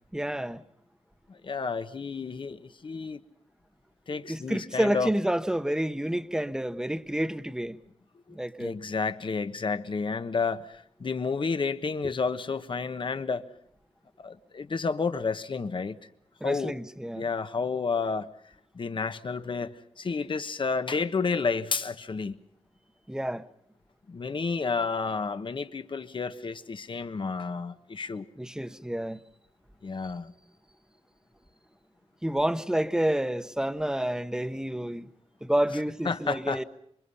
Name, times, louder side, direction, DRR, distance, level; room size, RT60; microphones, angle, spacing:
voice 1, 0.1-0.6 4.3-7.8 8.3-8.7 16.4-17.3 23.1-23.4 28.4-29.2 32.2-35.1 35.4-36.6, right 1 dB, 5° right, 1.0 m, -29 dB
voice 2, 1.3-3.2 4.1-5.1 8.3-13.4 14.2-16.0 16.4-16.7 17.1-18.3 18.7-22.3 24.1-28.3 29.8-30.3 36.0-36.6, left 4 dB, 50° left, 1.3 m, -31 dB
27.0 x 24.0 x 5.6 m
wide cardioid pair, 110°, 11 cm